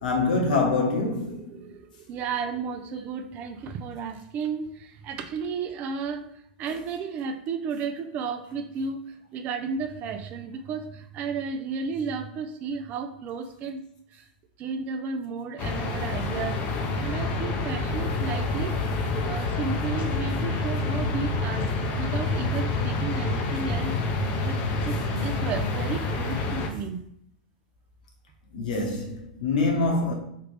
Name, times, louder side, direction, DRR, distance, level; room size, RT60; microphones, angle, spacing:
voice 1, 0.0-1.6 28.5-30.1, left 3 dB, 75° left, 1.0 m, -25 dB
voice 2, 1.3-6.3 6.6-9.0 9.3-13.8 14.1-14.2 14.6-18.8 19.2-21.7 22.0-24.0 24.4-27.0, right 5 dB, 35° right, 0.3 m, -33 dB
sound 1, 15.6-26.7, left 2 dB, 40° left, 0.6 m, -27 dB
3.2 x 2.4 x 3.3 m
hypercardioid pair, 115°, 4 cm